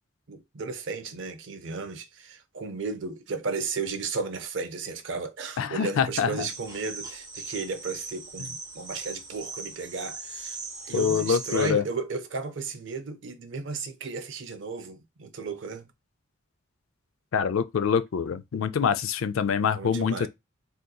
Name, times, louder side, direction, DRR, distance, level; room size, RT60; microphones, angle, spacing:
voice 1, 0.3-10.6 10.9-15.9 19.7-20.3, right 4 dB, 60° right, 0.5 m, -34 dB
voice 2, 5.6-6.5 10.9-11.8 17.3-20.3, left 7 dB, 75° left, 0.4 m, -25 dB
sound 1, 6.4-11.7, right 3 dB, 20° right, 0.7 m, -39 dB
3.7 x 2.8 x 2.3 m
head